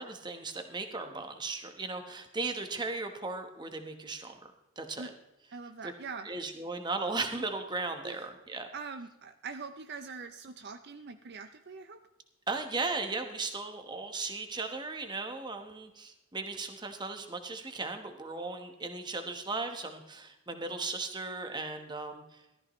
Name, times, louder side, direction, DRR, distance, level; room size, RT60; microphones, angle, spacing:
voice 1, 0.0-4.4 4.8-5.1 5.8-5.9 6.2-8.7 12.5-22.4, right 3 dB, 20° right, 6 dB, 1.1 m, -37 dB
voice 2, 5.5-6.3 8.0-8.2 8.7-12.0, right 5 dB, 50° right, 8 dB, 0.6 m, -43 dB
15.0 x 13.0 x 3.1 m, 0.95 s
head